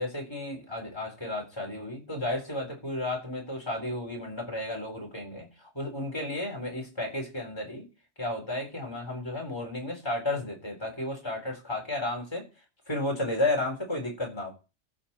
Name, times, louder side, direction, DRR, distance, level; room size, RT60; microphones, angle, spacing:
voice 1, 0.0-7.9 8.2-12.4 12.9-14.5, left 1 dB, 20° left, 0 dB, 4.1 m, -33 dB
15.0 x 6.4 x 4.4 m, 0.31 s
omnidirectional pair, 1.2 m